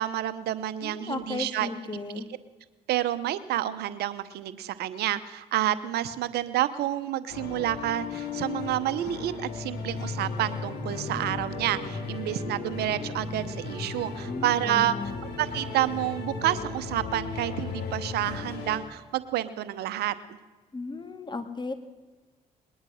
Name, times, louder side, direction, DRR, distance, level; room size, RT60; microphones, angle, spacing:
voice 1, 0.0-1.7 2.9-14.9 15.4-20.1, right 13 dB, 75° right, 13 dB, 0.9 m, -29 dB
voice 2, 0.8-2.3 14.2-15.2 20.7-21.7, left 3 dB, 25° left, 9 dB, 2.2 m, -35 dB
sound 1, 7.3-18.8, left 5 dB, 75° left, 3.5 m, -38 dB
sound 2, 8.5-18.4, left 3 dB, 50° left, 5.4 m, -38 dB
20.5 x 11.0 x 6.5 m, 1.3 s
supercardioid pair, 65°, 17 cm